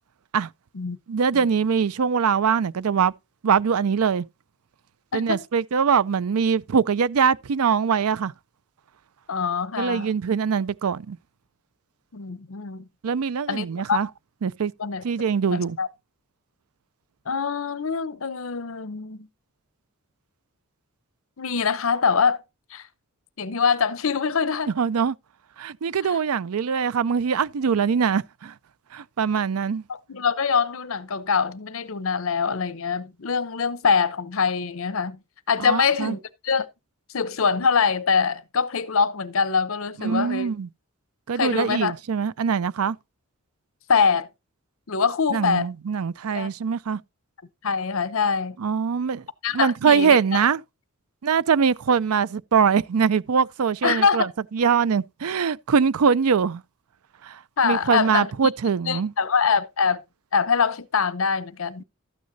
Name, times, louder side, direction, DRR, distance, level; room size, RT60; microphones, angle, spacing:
voice 1, 1.1-3.1 3.4-4.3 5.1-8.3 9.8-11.2 13.0-14.1 14.4-14.7 15.0-15.8 24.8-25.2 25.6-28.5 28.9-29.8 35.6-36.1 40.0-40.7 41.3-43.0 45.3-47.0 48.6-49.2 49.5-50.6 51.2-56.6 57.2-59.1, right 6 dB, 85° right, 0.5 m, -22 dB
voice 2, 9.3-10.1 12.1-12.8 13.5-14.0 14.8-15.0 15.5-15.9 17.3-19.2 21.4-22.4 22.7-22.9 23.4-24.7 26.0-26.2 29.9-35.2 35.5-36.7 37.1-40.5 41.3-41.9 43.9-44.3 44.9-45.7 46.3-46.5 47.6-48.6 49.4-50.2 53.8-54.3 57.6-58.3 58.9-60.0 60.3-61.8, left 5 dB, 70° left, 0.7 m, -24 dB
13.0 x 9.4 x 2.7 m
head